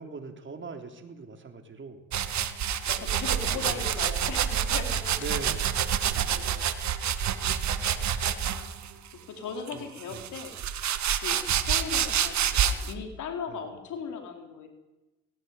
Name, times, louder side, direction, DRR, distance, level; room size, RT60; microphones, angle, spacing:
voice 1, 0.0-2.1 3.4-3.8 5.1-5.7 9.7-10.3 13.5-13.6, right 3 dB, 40° right, 5 dB, 3.8 m, -41 dB
sound 1, 2.1-8.9 9.7-12.9, right 9 dB, 65° right, 1.7 m, -28 dB
voice 2, 2.9-5.3 5.9-6.9 7.6-8.1 8.8-9.0 9.3-10.5 11.2-14.7, left 6 dB, 75° left, 4 dB, 4.1 m, -39 dB
19.0 x 17.5 x 9.8 m, 1.0 s
cardioid pair, 90°, 30 cm